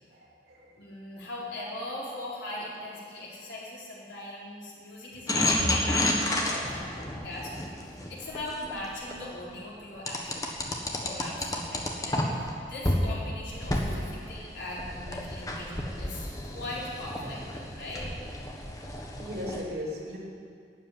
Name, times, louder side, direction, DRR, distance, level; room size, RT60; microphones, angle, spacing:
voice 1, 0.1-0.7 5.6-5.8 19.2-20.2, left 1 dB, 70° right, -4 dB, 3.2 m, -36 dB
voice 2, 0.8-6.1 6.5-7.6 8.1-10.7 11.0-18.1, left 1 dB, 80° left, -5 dB, 4.1 m, -40 dB
sound 1, 5.3-9.2 10.1-12.5 12.8-13.0 13.5-19.6, left 1 dB, 20° left, 1.4 m, -31 dB
12.5 x 8.9 x 9.5 m, 2.3 s
head